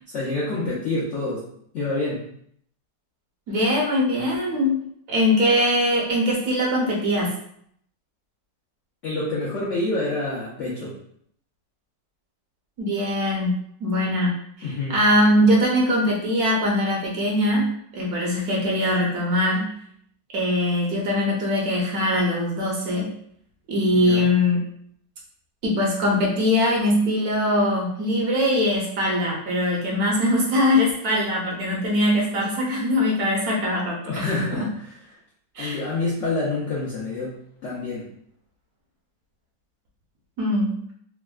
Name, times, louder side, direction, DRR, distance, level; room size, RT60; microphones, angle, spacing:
voice 1, 0.1-1.4 1.7-2.2 9.0-10.9 14.6-15.0 23.9-24.3 34.1-34.6 35.6-37.4 37.6-38.1, left 2 dB, 70° left, -7 dB, 0.7 m, -27 dB
voice 2, 3.5-4.8 5.1-7.3 12.8-19.7 20.3-23.1 23.7-24.6 25.6-34.7 35.5-35.8 40.4-40.8, left 1 dB, 70° right, -2 dB, 1.0 m, -22 dB
3.3 x 2.1 x 2.3 m, 0.67 s
omnidirectional pair, 1.9 m